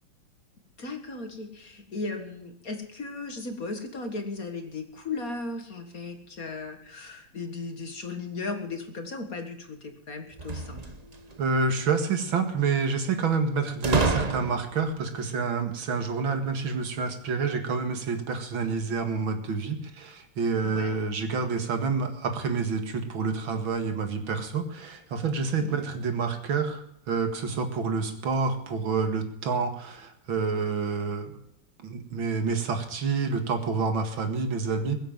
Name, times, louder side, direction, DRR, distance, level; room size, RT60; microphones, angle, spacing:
voice 1, 0.8-10.8 20.6-21.0 25.6-25.8, left 3 dB, 45° left, 6 dB, 2.1 m, -36 dB
sound 1, 10.3-11.4 13.8-14.9, right 3 dB, 30° right, 0.7 m, -28 dB
voice 2, 11.4-31.3 31.8-35.0, right 4 dB, 70° right, 7 dB, 2.5 m, -28 dB
21.5 x 8.0 x 7.4 m, 0.74 s
omnidirectional pair, 2.3 m